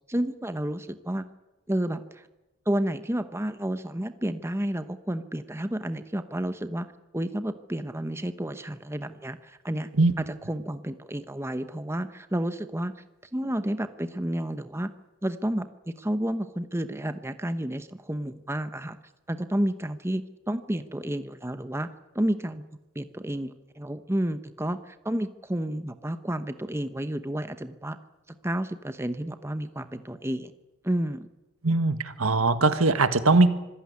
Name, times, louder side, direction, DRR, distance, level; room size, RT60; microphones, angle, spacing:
voice 1, 0.1-1.3 1.7-2.3 2.7-6.9 7.1-9.9 10.2-12.9 13.3-14.9 15.2-19.0 19.3-21.9 22.1-22.6 22.9-28.0 28.4-30.5 30.8-31.3, right 1 dB, 10° right, 10 dB, 1.0 m, -31 dB
voice 2, 31.6-33.5, right 3 dB, 85° right, 10 dB, 1.7 m, -21 dB
26.0 x 16.0 x 9.7 m, 1.0 s
head